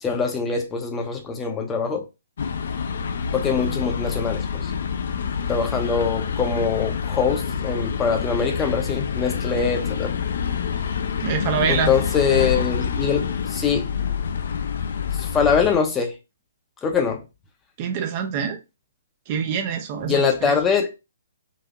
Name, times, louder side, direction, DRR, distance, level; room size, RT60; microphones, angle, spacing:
voice 1, 0.0-2.0 3.3-4.7 5.5-10.1 11.7-13.9 15.2-16.1 16.8-17.2 20.0-20.9, left 6 dB, 15° left, 0.6 m, -23 dB
sound 1, 2.4-15.8, left 6 dB, 55° left, 0.4 m, -27 dB
voice 2, 11.2-11.9 17.8-18.6 19.3-20.6, right 7 dB, 30° right, 0.5 m, -25 dB
4.0 x 2.7 x 2.4 m
figure-of-eight pair, 125°, 0 cm